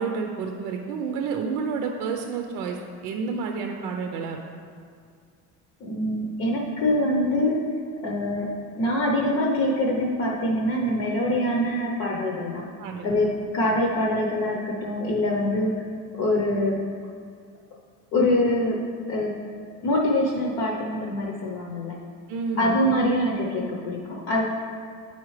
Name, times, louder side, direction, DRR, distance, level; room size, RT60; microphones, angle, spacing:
voice 1, 0.0-4.4 12.8-13.1 22.3-22.8, right 5 dB, 70° right, 3 dB, 0.6 m, -30 dB
voice 2, 5.8-7.6 8.0-8.5 8.8-12.6 13.0-15.7 16.2-16.8 18.1-18.8 19.1-19.3 19.8-22.0 22.6-24.4, left 1 dB, 50° left, -2 dB, 0.8 m, -24 dB
9.6 x 4.3 x 3.2 m, 2.1 s
cardioid pair, 160°, 34 cm